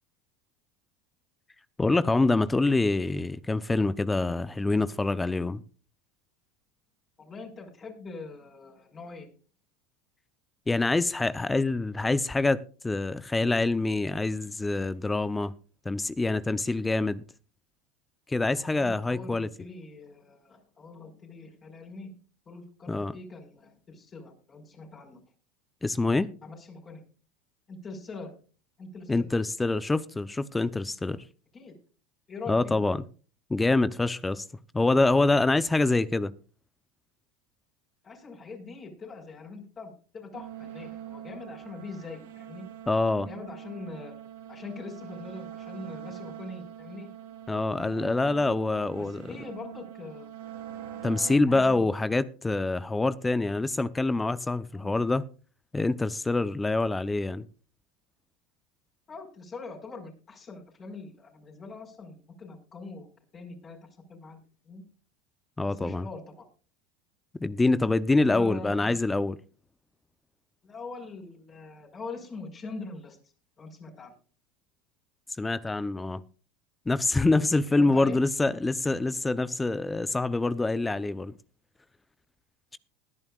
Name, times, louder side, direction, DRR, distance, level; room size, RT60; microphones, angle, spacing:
voice 1, 1.8-5.6 10.7-15.5 15.8-17.2 18.3-19.5 22.9-23.2 25.8-26.3 29.1-31.2 32.5-33.0 33.5-34.4 34.7-36.3 42.9-43.3 47.5-49.4 51.0-55.2 55.7-57.5 65.6-66.1 67.4-69.4 75.4-76.2 76.9-81.3, left 2 dB, 10° left, 0.8 m, -26 dB
voice 2, 7.2-9.3 18.6-22.1 22.5-25.2 26.4-27.0 27.7-28.3 28.8-29.3 31.5-31.8 32.3-32.8 38.0-42.7 43.3-44.1 44.5-47.1 47.9-50.3 51.2-51.9 54.7-54.9 59.1-63.1 63.3-63.8 64.1-64.4 64.6-64.8 65.7-66.4 68.2-69.0 70.6-73.2 73.6-74.1 77.7-78.2, left 3 dB, 30° left, 5.0 m, -43 dB
sound 1, 40.3-51.4, right 10 dB, 80° right, 3.1 m, -43 dB
20.5 x 10.5 x 2.4 m
supercardioid pair, 100°, 0 cm